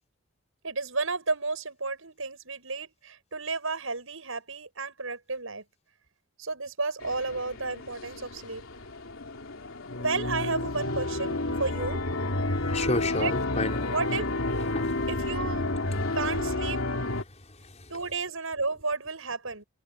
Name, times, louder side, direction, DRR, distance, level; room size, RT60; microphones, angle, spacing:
voice 1, 0.6-5.6 6.4-8.6 10.0-12.0 13.2-13.3 13.9-14.3 15.1-15.7 16.1-16.8 17.9-19.6, right 3 dB, 80° right, 7.2 m, -32 dB
sound 1, 7.0-17.2, left 2 dB, 80° left, 3.2 m, -31 dB
voice 2, 12.7-13.9 14.7-15.0 17.3-17.9, left 2 dB, 35° left, 5.3 m, -32 dB
head